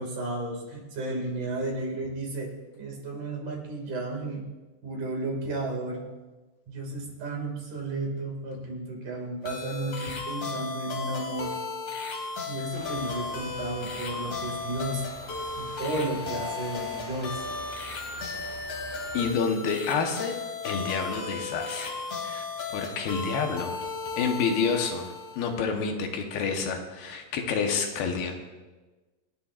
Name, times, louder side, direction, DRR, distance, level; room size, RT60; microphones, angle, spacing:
voice 1, 0.0-4.4 4.8-6.0 6.7-11.6 12.5-15.1 15.6-17.5, right 2 dB, 60° right, -1 dB, 3.6 m, -33 dB
sound 1, 9.5-25.6, left 4 dB, 55° left, 2.9 m, -35 dB
sound 2, 12.7-19.3, equal, 15° right, 2.7 m, -46 dB
voice 2, 19.1-20.4 20.6-21.9 22.2-22.5 22.7-23.8 24.2-28.3, left 5 dB, 80° left, 3 dB, 3.0 m, -28 dB
27.0 x 10.0 x 2.5 m, 1.2 s
omnidirectional pair, 4.3 m